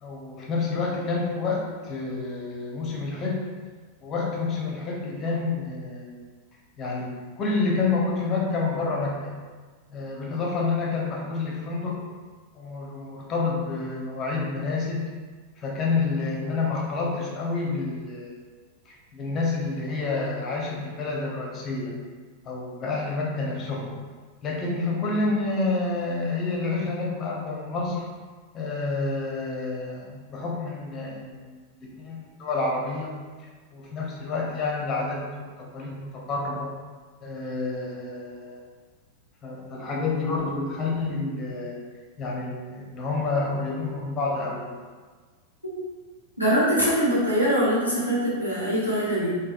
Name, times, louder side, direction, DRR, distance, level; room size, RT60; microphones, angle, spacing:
voice 1, 0.0-3.4 4.0-6.1 6.8-9.3 9.9-12.0 12.5-15.1 15.6-18.4 18.9-22.0 22.5-24.0 24.4-28.1 28.5-33.1 33.7-35.3 35.7-36.7 37.2-38.6 39.4-41.8 42.2-44.7, left 3 dB, 30° left, -3 dB, 0.6 m, -29 dB
voice 2, 46.4-49.4, equal, 90° right, -10 dB, 1.0 m, -23 dB
3.3 x 2.2 x 2.3 m, 1.4 s
figure-of-eight pair, 90°, 0 cm